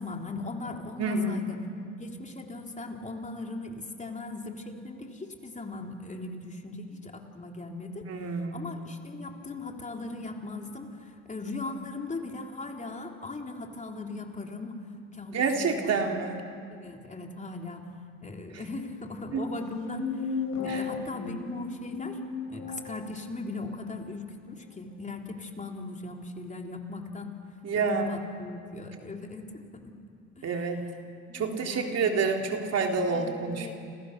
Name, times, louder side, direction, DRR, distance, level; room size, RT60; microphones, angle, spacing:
voice 1, 0.0-1.6 2.0-8.1 8.5-14.8 15.1-16.3 16.7-17.9 18.2-22.2 22.5-27.4 27.7-29.9 30.4-30.5 31.3-32.1 33.1-33.7, left 3 dB, 25° left, 2 dB, 3.4 m, -39 dB
voice 2, 1.0-1.4 8.1-8.7 15.3-16.4 18.5-18.7 19.3-19.4 20.7-20.8 27.6-28.1 30.4-30.9 31.3-33.7, right 4 dB, 55° right, 2 dB, 3.6 m, -28 dB
sound 1, 19.6-23.0, left 5 dB, 75° left, 4.9 m, -35 dB
30.0 x 27.5 x 6.7 m, 2.4 s
supercardioid pair, 80°, 30 cm